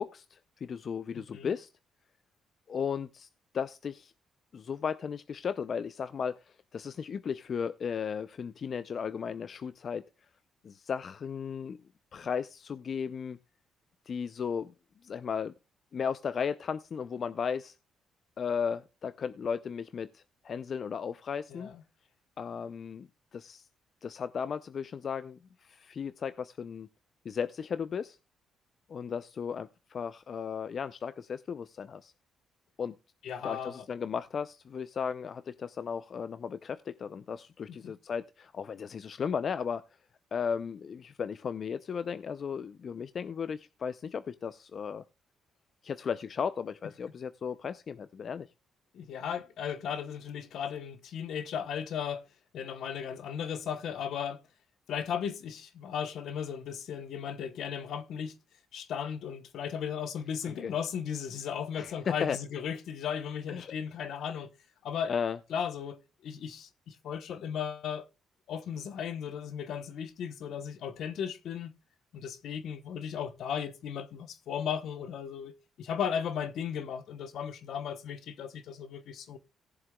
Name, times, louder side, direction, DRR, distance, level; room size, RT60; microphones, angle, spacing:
voice 1, 0.0-1.7 2.7-3.3 3.5-4.1 4.5-10.0 10.6-11.8 12.1-13.4 14.1-14.7 15.0-15.5 15.9-17.8 18.4-21.7 22.4-23.6 24.0-26.9 27.2-28.2 28.9-32.1 32.8-32.9 33.4-39.8 40.3-45.0 45.8-48.5 60.4-60.7 61.7-62.4 63.5-63.7 65.1-65.4, left 6 dB, 50° left, 0.5 m, -35 dB
voice 2, 1.1-1.5 21.5-21.8 33.2-33.9 37.7-37.9 48.9-52.3 52.5-54.4 54.9-58.4 58.7-64.5 64.8-65.1 65.5-68.1 68.5-71.7 72.1-79.4, left 8 dB, 70° left, 0.9 m, -36 dB
18.0 x 7.2 x 2.3 m
cardioid pair, 90°, 0 cm